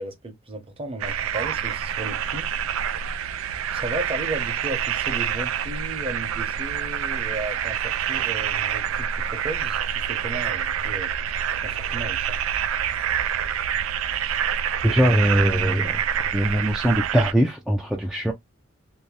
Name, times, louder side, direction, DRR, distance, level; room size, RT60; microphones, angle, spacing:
voice 1, 0.0-2.5 3.7-11.1 11.6-12.4, right 2 dB, 30° right, 0.8 m, -34 dB
sound 1, 1.0-17.3, right 9 dB, 90° right, 0.3 m, -27 dB
voice 2, 14.8-18.3, equal, 5° right, 0.3 m, -22 dB
2.7 x 2.1 x 3.1 m
head